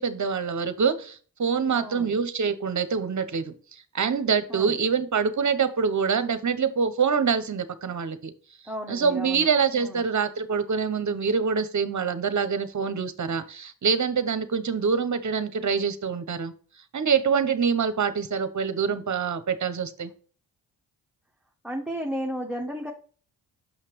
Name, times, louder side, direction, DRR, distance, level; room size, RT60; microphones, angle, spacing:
voice 1, 0.0-3.5 3.9-8.3 8.9-16.5 16.9-20.1, right 6 dB, 40° right, 11 dB, 1.0 m, -25 dB
voice 2, 1.7-2.1 4.5-4.7 8.7-9.5 9.7-10.0 21.6-22.9, equal, ahead, 0 dB, 1.1 m, -33 dB
6.4 x 5.7 x 3.2 m, 0.40 s
supercardioid pair, 55°, 44 cm